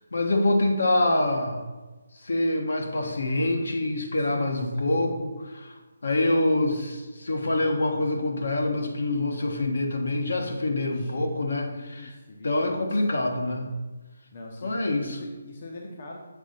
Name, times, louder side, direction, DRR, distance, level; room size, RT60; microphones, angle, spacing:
voice 1, 0.0-1.6 2.2-5.7 6.0-12.1 12.4-13.7 14.6-15.2, left 2 dB, 70° left, 2 dB, 1.3 m, -25 dB
voice 2, 4.3-5.1 10.8-11.3 11.7-13.0 14.3-16.2, left 2 dB, 40° left, 0 dB, 0.9 m, -44 dB
7.2 x 3.9 x 5.5 m, 1.2 s
hypercardioid pair, 170°, 0 cm